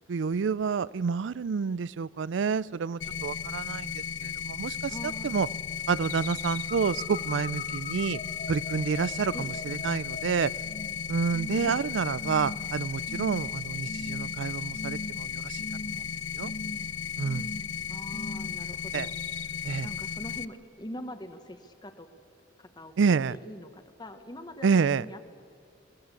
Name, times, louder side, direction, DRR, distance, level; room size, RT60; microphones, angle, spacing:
voice 1, 0.1-4.9 5.2-5.5 5.9-8.2 8.5-10.5 11.1-15.6 15.9-16.0 16.3-16.5 17.2-17.5 18.9-19.1 19.6-19.9 23.0-23.3 24.6-25.0, right 5 dB, 85° right, 21 dB, 0.4 m, -28 dB
sound 1, 3.0-20.4, left 7 dB, 80° left, 0.6 m, -35 dB
voice 2, 4.9-5.5 9.3-9.5 11.6-11.9 17.9-19.1 19.8-22.1 22.6-24.7 25.0-25.2, left 1 dB, 25° left, 8 dB, 1.2 m, -43 dB
sound 2, 6.0-11.0 11.3-11.8 12.2-12.7 13.1-13.5 13.9-14.4 14.7-15.3 15.6-16.1 16.4-16.9 17.2-17.7 18.1-18.6 18.9-19.4, left 2 dB, 40° left, 1.4 m, -40 dB
22.0 x 16.5 x 8.4 m, 2.4 s
head